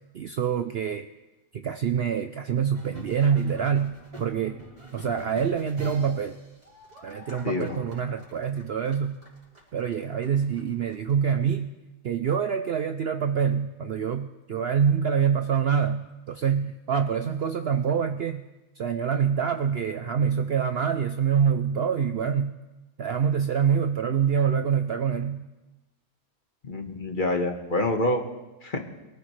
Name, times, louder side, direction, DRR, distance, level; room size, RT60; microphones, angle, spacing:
voice 1, 0.1-1.1 1.5-4.6 4.9-6.4 7.0-9.2 9.7-11.7 12.0-18.4 18.8-22.6 23.0-25.5, right 7 dB, 60° right, 8 dB, 0.7 m, -26 dB
sound 1, 2.6-11.5, right 1 dB, 25° right, 4.2 m, -45 dB
voice 2, 7.4-7.8 26.6-28.2 28.6-28.8, left 1 dB, 35° left, 3 dB, 1.5 m, -26 dB
23.5 x 14.0 x 3.2 m, 1.1 s
omnidirectional pair, 1.5 m